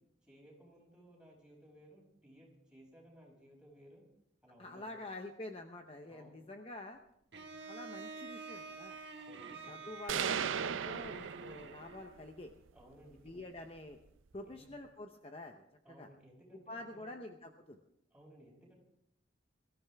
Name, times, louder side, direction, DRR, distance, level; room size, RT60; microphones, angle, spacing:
voice 1, 0.2-4.1 4.4-5.0 6.1-6.3 9.2-9.8 12.7-13.4 14.5-14.7 15.8-17.1 18.1-18.8, equal, 5° right, -3 dB, 5.3 m, -59 dB
voice 2, 4.6-7.0 7.5-9.0 9.7-12.5 13.2-14.0 14.3-16.1 16.7-17.8, left 2 dB, 30° left, 4 dB, 0.8 m, -47 dB
Bowed string instrument, 7.3-12.2, right 4 dB, 60° right, 1.4 m, -48 dB
sound 1, 10.1-12.0, right 7 dB, 90° right, 0.5 m, -36 dB
22.5 x 14.0 x 3.5 m, 0.76 s
head